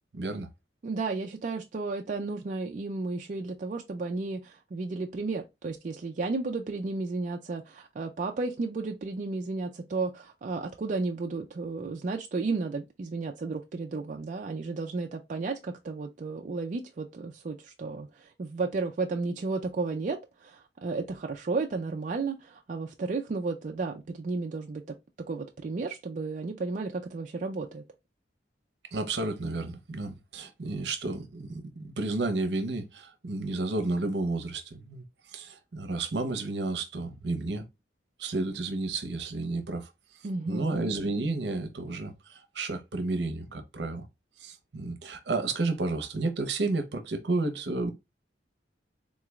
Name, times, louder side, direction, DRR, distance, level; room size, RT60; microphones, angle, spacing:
voice 1, 0.1-0.5 28.9-35.1 35.3-37.7 38.2-39.9 40.5-44.1 44.4-47.9, right 2 dB, 70° right, 0.7 m, -31 dB
voice 2, 0.8-24.8 25.2-27.8 40.2-40.8, right 3 dB, 45° right, 0.4 m, -33 dB
3.8 x 3.1 x 2.3 m
head